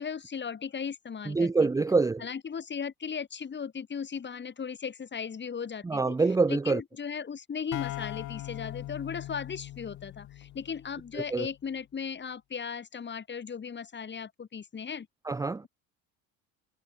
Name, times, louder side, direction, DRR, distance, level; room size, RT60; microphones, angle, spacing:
voice 1, 0.0-1.7 2.2-6.1 6.5-15.1, left 6 dB, 35° left, 3.7 m, -37 dB
voice 2, 1.3-2.2 5.8-6.8 11.3-11.5 15.3-15.6, right 3 dB, 10° right, 0.6 m, -25 dB
sound 1, 7.7-11.4, left 14 dB, 65° left, 5.2 m, -40 dB
supercardioid pair, 90°, 33 cm